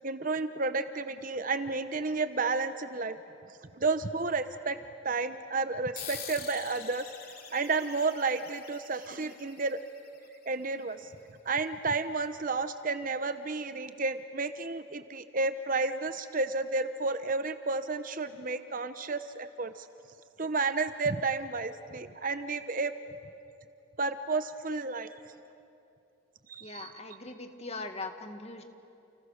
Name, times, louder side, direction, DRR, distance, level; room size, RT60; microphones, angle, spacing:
voice 1, 0.0-3.2 3.7-4.8 5.0-7.1 7.5-9.8 10.5-11.1 11.4-19.9 20.4-22.9 24.0-25.1 26.5-26.9, right 3 dB, 40° right, 10 dB, 0.9 m, -31 dB
sound 1, 6.0-10.9, left 7 dB, 45° left, 3.0 m, -46 dB
voice 2, 26.6-28.6, left 3 dB, 30° left, 6 dB, 1.9 m, -40 dB
30.0 x 30.0 x 6.6 m, 2.7 s
head